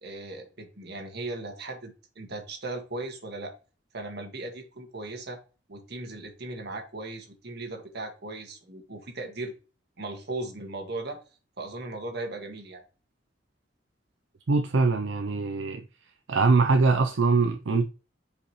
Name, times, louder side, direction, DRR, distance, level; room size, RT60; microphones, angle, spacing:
voice 1, 0.0-3.5 3.9-5.4 5.7-9.5 10.0-11.2 11.6-12.8, right 2 dB, 60° right, 1.7 m, -37 dB
voice 2, 14.5-15.8 16.3-17.9, right 4 dB, 80° right, 0.6 m, -22 dB
6.9 x 5.1 x 3.0 m
head